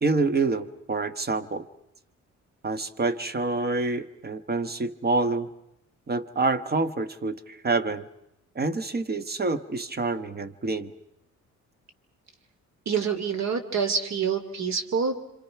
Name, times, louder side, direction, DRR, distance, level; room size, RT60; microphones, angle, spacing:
voice 1, 0.0-1.6 2.6-5.5 6.1-8.1 8.5-10.9, right 3 dB, 30° right, 13 dB, 1.4 m, -27 dB
voice 2, 12.9-15.3, right 6 dB, 60° right, 9 dB, 2.7 m, -27 dB
27.5 x 25.5 x 5.9 m, 0.82 s
cardioid pair, 90°, 30 cm